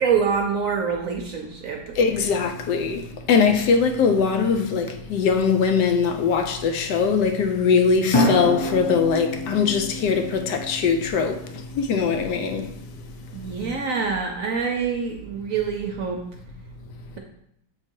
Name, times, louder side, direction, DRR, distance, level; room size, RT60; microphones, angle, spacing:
voice 1, 0.0-2.0 13.3-16.2, right 6 dB, 65° right, 0.9 m, -25 dB
voice 2, 2.0-12.7, left 5 dB, 75° left, 1.2 m, -21 dB
sound 1, 3.0-3.3 8.1-12.4, left 1 dB, 35° left, 0.4 m, -28 dB
6.5 x 3.9 x 4.5 m
omnidirectional pair, 1.9 m